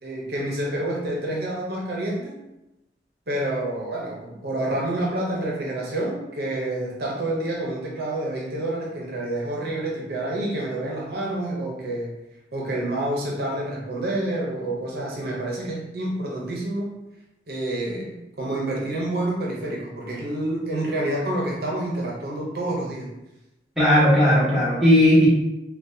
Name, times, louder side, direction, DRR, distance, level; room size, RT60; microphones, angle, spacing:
voice 1, 0.0-2.4 3.3-12.2 12.5-16.9 17.5-23.1, right 1 dB, 55° right, -3 dB, 0.7 m, -28 dB
voice 2, 23.8-25.3, left 1 dB, ahead, -9 dB, 0.9 m, -16 dB
3.9 x 2.2 x 2.6 m, 0.94 s
head